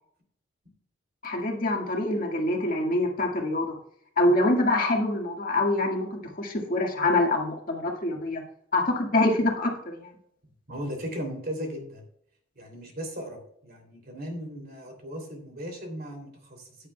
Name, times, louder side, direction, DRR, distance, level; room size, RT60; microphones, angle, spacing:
voice 1, 1.2-3.8 4.2-8.4 8.7-10.1, left 2 dB, 45° left, 0 dB, 1.8 m, -25 dB
voice 2, 10.7-12.0 12.5-16.9, equal, 50° right, 3 dB, 3.0 m, -37 dB
15.0 x 9.7 x 2.3 m, 0.68 s
head